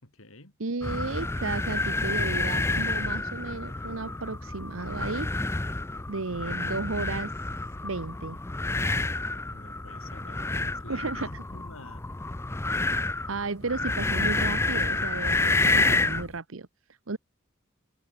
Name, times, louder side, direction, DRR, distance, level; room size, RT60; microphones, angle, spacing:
voice 1, 0.0-0.6 9.5-12.0, left 2 dB, 85° left, 5.7 m, -48 dB
voice 2, 0.6-5.6 6.1-7.3 7.8-8.4 10.9-11.4 13.3-16.7 17.1-17.2, right 3 dB, 70° right, 1.1 m, -34 dB
sound 1, 0.8-16.3, left 3 dB, 15° left, 0.4 m, -29 dB
head